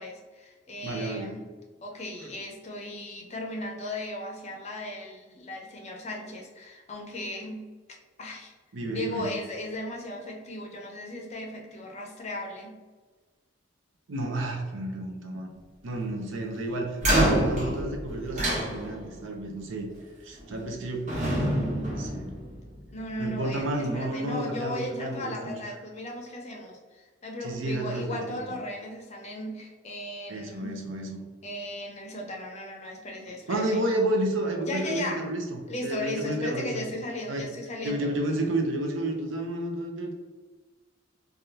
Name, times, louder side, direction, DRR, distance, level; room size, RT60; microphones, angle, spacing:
voice 1, 0.0-1.4 1.8-7.6 8.2-8.5 8.9-12.8 22.9-30.8 31.4-33.8 34.7-35.2 35.7-38.2, left 1 dB, 35° left, 1 dB, 0.5 m, -36 dB
voice 2, 0.8-1.3 8.7-9.3 14.1-15.5 15.8-19.9 20.2-22.3 23.2-25.6 27.4-28.4 30.3-31.2 33.5-36.9 37.3-37.5 37.8-40.1, right 1 dB, 75° right, 2 dB, 0.6 m, -31 dB
sound 1, 17.0-19.3 20.4-20.8 21.1-22.8, equal, 40° right, 0.8 m, -27 dB
3.4 x 2.3 x 2.7 m, 1.4 s
head